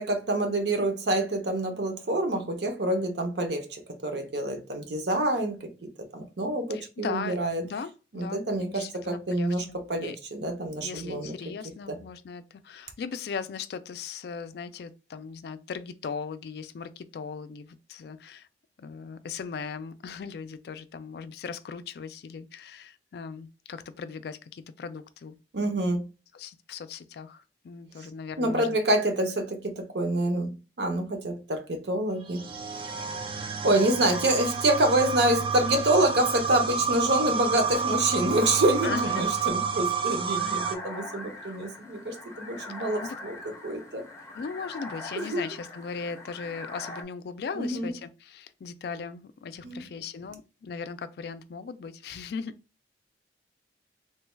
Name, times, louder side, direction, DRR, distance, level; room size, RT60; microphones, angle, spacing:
voice 1, 0.0-5.7 6.1-7.6 8.1-11.3 11.9-12.0 25.5-26.0 28.0-28.1 28.4-32.4 33.6-44.0 45.2-45.4 47.5-47.9 49.6-49.9, right 1 dB, 70° right, 0.7 m, -27 dB
voice 2, 6.7-7.4 7.6-10.2 10.8-18.5 18.8-25.4 26.3-28.8 38.8-39.3 43.0-43.2 44.3-52.5, left 5 dB, 60° left, 0.3 m, -38 dB
sound 1, 32.3-40.7, right 6 dB, 30° right, 0.4 m, -30 dB
sound 2, 40.3-47.0, left 2 dB, 15° left, 0.6 m, -42 dB
3.2 x 2.2 x 3.1 m
head